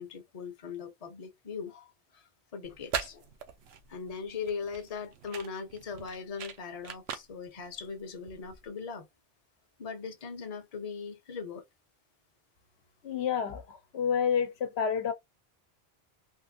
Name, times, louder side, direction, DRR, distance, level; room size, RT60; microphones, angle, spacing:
voice 1, 0.0-3.3 3.9-9.1 9.8-11.6, left 5 dB, 40° left, 0.7 m, -40 dB
sound 1, 2.6-8.7, right 7 dB, 90° right, 0.9 m, -41 dB
voice 2, 13.0-15.1, left 7 dB, 85° left, 1.0 m, -29 dB
3.5 x 2.5 x 2.6 m
omnidirectional pair, 1.0 m